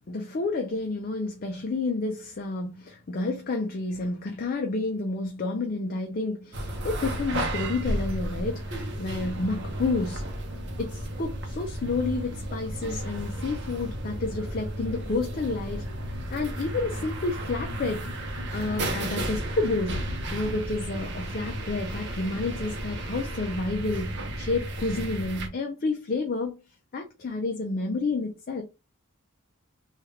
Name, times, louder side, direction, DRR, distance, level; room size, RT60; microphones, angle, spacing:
voice 1, 0.1-10.2 10.8-15.8 16.3-26.6 26.9-28.6, left 3 dB, 40° left, 0.4 m, -30 dB
sound 1, 6.5-25.5, right 1 dB, 55° right, 0.7 m, -33 dB
3.2 x 2.4 x 3.1 m
head